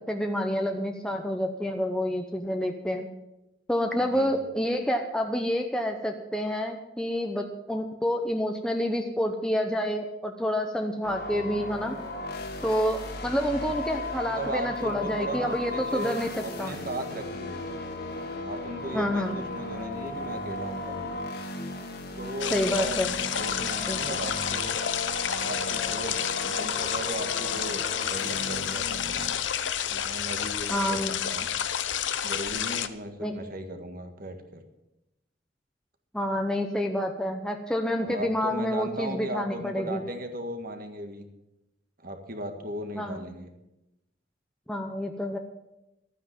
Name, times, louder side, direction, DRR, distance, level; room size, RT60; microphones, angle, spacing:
voice 1, 0.1-3.1 3.7-12.0 12.6-16.7 18.9-19.4 22.5-23.1 23.9-24.2 30.7-31.1 33.2-33.3 36.1-40.0 42.9-43.3 44.7-45.4, equal, 5° left, 3 dB, 0.8 m, -28 dB
voice 2, 4.0-4.3 14.3-17.6 18.4-21.3 22.1-23.0 23.4-24.7 25.4-29.3 29.9-31.0 31.3-31.5 32.2-34.6 38.0-41.2 42.0-43.5, right 1 dB, 50° right, 5 dB, 1.8 m, -37 dB
sound 1, 11.0-29.3, left 2 dB, 60° left, 1.9 m, -36 dB
sound 2, 22.4-32.9, left 9 dB, 85° left, 0.8 m, -30 dB
12.5 x 9.3 x 7.5 m, 0.94 s
head